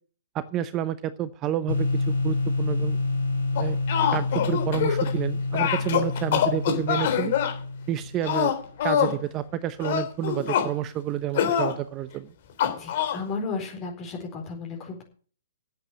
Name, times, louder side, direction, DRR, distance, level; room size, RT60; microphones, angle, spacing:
voice 1, 0.3-3.0 3.5-3.8 4.1-7.3 7.9-8.5 8.8-12.3, right 11 dB, 25° right, 14 dB, 0.8 m, -30 dB
sound 1, 1.7-8.5, left 3 dB, 80° left, 5.5 m, -28 dB
sound 2, 3.6-5.2 5.5-7.5 8.2-9.2 9.8-10.7 11.3-11.7 12.6-13.2, left 9 dB, 50° left, 3.6 m, -25 dB
voice 2, 12.8-15.0, left 4 dB, 25° left, 0 dB, 4.3 m, -34 dB
10.5 x 8.3 x 8.4 m, 0.42 s
hypercardioid pair, 135°, 0 cm